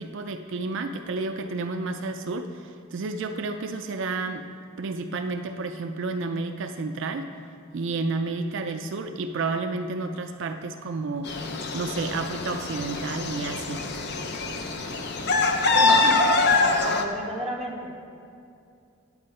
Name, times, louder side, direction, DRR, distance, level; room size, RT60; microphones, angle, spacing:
voice 1, 0.0-4.5 4.8-7.3 7.7-11.3 11.7-13.9, right 3 dB, 60° right, 6 dB, 0.4 m, -31 dB
sound 1, 11.2-17.0, left 3 dB, 50° left, 0.6 m, -24 dB
voice 2, 15.7-16.2 16.8-17.9, right 1 dB, ahead, -5 dB, 1.6 m, -32 dB
9.5 x 8.3 x 4.4 m, 2.5 s
head